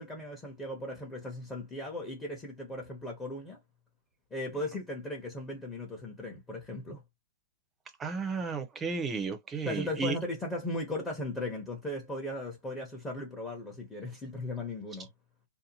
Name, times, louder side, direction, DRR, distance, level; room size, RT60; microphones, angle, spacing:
voice 1, 0.0-3.6 4.3-7.0 9.7-15.1, left 1 dB, 15° left, 0.9 m, -37 dB
voice 2, 8.0-10.1, right 4 dB, 15° right, 0.6 m, -33 dB
2.7 x 2.1 x 2.8 m
hypercardioid pair, 130°, 0 cm